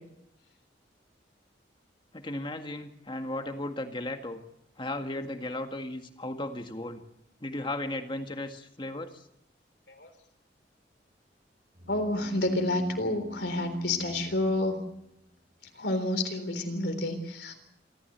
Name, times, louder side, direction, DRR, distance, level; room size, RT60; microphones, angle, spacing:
voice 1, 2.1-4.4 4.8-7.0 7.4-9.2, left 1 dB, 25° left, 6 dB, 1.8 m, -35 dB
sound 1, 11.8-15.5, left 3 dB, 50° right, 3.4 m, -48 dB
voice 2, 11.9-14.8 15.8-17.5, left 1 dB, 65° left, 7 dB, 3.7 m, -29 dB
26.5 x 14.0 x 8.2 m, 0.82 s
head